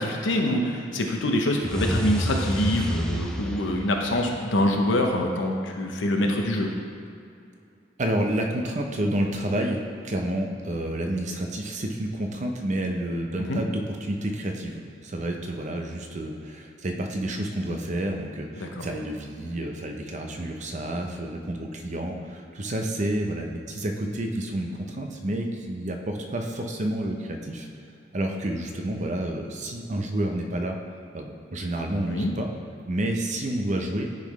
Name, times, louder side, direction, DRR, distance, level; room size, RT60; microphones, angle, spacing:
voice 1, 0.0-6.7 13.5-13.6 18.6-18.9 32.1-32.3, left 1 dB, 90° left, 2 dB, 0.7 m, -25 dB
sound 1, 1.6-4.8, equal, 5° left, 0.3 m, -29 dB
voice 2, 8.0-27.7 28.1-30.8 31.1-32.5 32.9-34.1, right 1 dB, 40° right, 3 dB, 0.6 m, -29 dB
10.0 x 3.9 x 3.1 m, 2.5 s
head